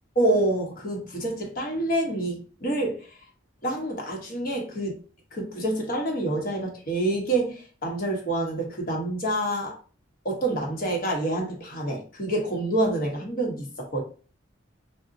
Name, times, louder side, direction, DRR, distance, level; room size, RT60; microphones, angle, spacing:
voice 1, 0.2-3.1 3.6-5.0 5.3-9.8 10.2-14.0, right 1 dB, 45° left, 0 dB, 0.9 m, -27 dB
3.8 x 2.1 x 2.5 m, 0.38 s
head